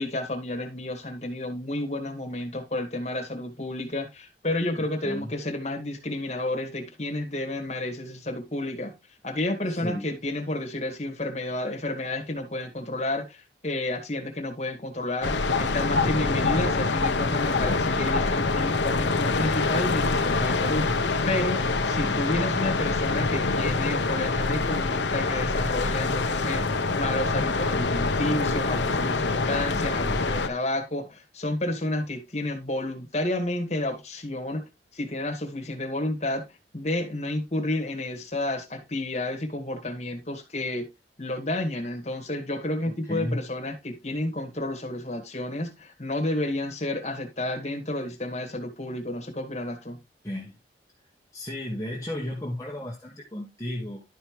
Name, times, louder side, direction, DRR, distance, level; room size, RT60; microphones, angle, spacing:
voice 1, 0.0-8.9 9.2-15.3 15.6-20.9 21.3-26.6 26.9-36.4 36.7-40.9 41.2-50.0, left 1 dB, 40° left, 2.0 m, -31 dB
voice 2, 9.7-10.1 22.0-22.2 42.8-43.4 50.2-50.5 51.3-54.0, left 1 dB, 15° left, 1.7 m, -34 dB
sound 1, 15.2-30.5, left 3 dB, 80° left, 1.0 m, -25 dB
12.0 x 5.7 x 3.1 m
head